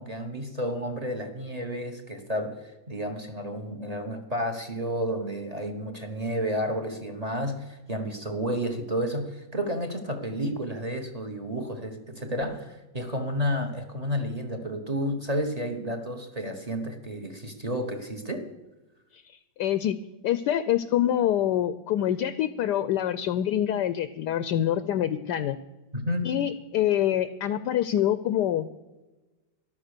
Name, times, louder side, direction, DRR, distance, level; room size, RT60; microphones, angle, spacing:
voice 1, 0.0-18.5 25.9-26.3, equal, 25° right, 7 dB, 1.1 m, -31 dB
voice 2, 19.1-20.0 20.2-25.6 26.2-28.7, left 11 dB, 70° left, 14 dB, 1.1 m, -26 dB
13.5 x 11.0 x 6.7 m, 1.1 s
omnidirectional pair, 2.1 m